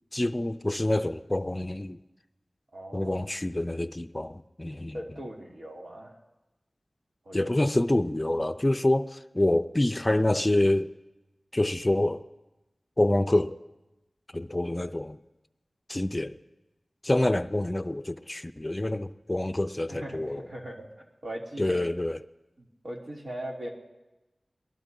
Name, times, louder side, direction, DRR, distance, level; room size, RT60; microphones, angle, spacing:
voice 1, 0.1-2.0 2.9-5.0 7.3-10.9 11.5-12.2 13.0-13.6 14.3-15.2 15.9-16.4 17.0-20.5 21.6-22.2, left 1 dB, 30° left, 11 dB, 0.5 m, -26 dB
voice 2, 2.7-3.2 4.9-6.2 7.2-7.5 19.9-20.9 21.2-21.8 22.6-23.7, right 1 dB, 70° right, -2 dB, 2.8 m, -39 dB
22.5 x 20.0 x 2.7 m, 1.0 s
cardioid pair, 45°, 0 cm